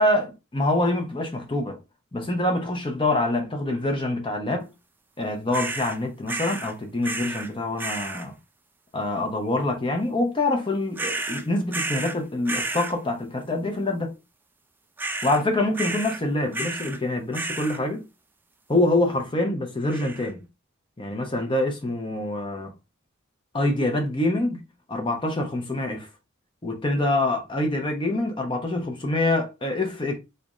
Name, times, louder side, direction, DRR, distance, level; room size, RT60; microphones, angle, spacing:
voice 1, 0.0-1.8 2.1-4.7 5.2-8.3 8.9-14.2 15.2-18.0 18.7-20.4 21.0-22.7 23.5-26.1 26.6-30.2, left 2 dB, 25° left, 0.7 m, -25 dB
sound 1, 5.5-6.0 6.3-6.7 7.0-7.5 7.8-8.3 11.0-12.2 12.5-13.0 15.0-15.4 15.7-16.2 16.5-17.0 17.3-17.8 19.9-20.3, right 2 dB, 10° right, 0.3 m, -31 dB
4.0 x 3.3 x 2.4 m
head